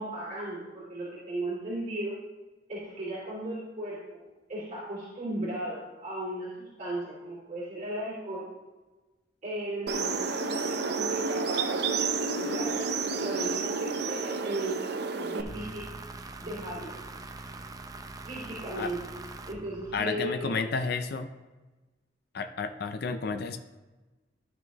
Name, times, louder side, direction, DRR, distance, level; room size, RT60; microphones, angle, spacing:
voice 1, 0.0-2.2 2.7-4.2 4.5-8.5 9.4-11.8 12.4-14.8 15.1-15.9 16.4-16.9 17.4-17.5 18.2-19.0 19.5-20.6, right 1 dB, 40° right, -9 dB, 2.6 m, -36 dB
sound 1, 9.9-15.4, right 4 dB, 65° right, 0.7 m, -30 dB
sound 2, 15.5-20.4, right 2 dB, 20° right, 0.5 m, -43 dB
voice 2, 19.9-21.3 22.3-23.6, left 4 dB, 60° left, 8 dB, 0.5 m, -31 dB
12.5 x 6.2 x 3.0 m, 1.2 s
head